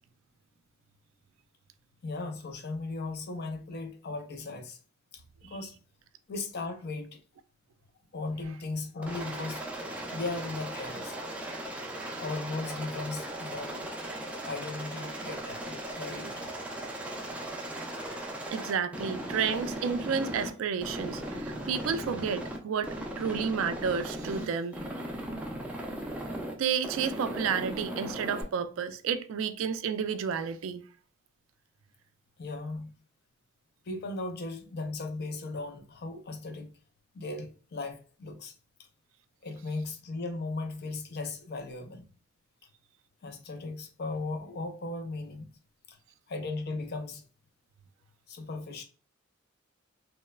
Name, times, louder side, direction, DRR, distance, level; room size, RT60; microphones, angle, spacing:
voice 1, 2.0-4.8 5.1-5.7 6.3-7.2 8.1-9.7 10.1-11.2 12.1-13.9 14.5-16.5 32.4-32.9 33.9-36.7 37.1-38.5 39.4-42.0 43.2-45.5 45.9-46.0 46.3-47.2 48.3-48.8, left 3 dB, 55° left, 0.5 m, -37 dB
Aircraft, 9.0-20.5 20.8-22.6 22.8-24.5 24.7-26.5 26.8-28.4, right 1 dB, 5° right, 0.4 m, -37 dB
voice 2, 18.5-24.8 26.5-30.8, right 6 dB, 75° right, 0.3 m, -31 dB
3.0 x 2.0 x 2.2 m
head